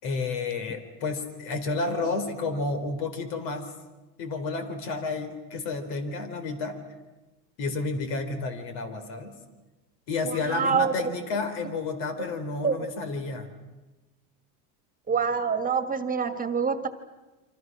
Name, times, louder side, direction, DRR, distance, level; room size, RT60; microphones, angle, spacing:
voice 1, 0.0-3.7 4.2-6.8 7.6-9.4 10.1-13.5, left 3 dB, 75° left, 8 dB, 4.1 m, -31 dB
voice 2, 10.2-10.9 12.6-12.8 15.1-16.9, right 6 dB, 20° right, 9 dB, 1.7 m, -26 dB
29.0 x 25.0 x 6.1 m, 1.1 s
cardioid pair, 125°, 37 cm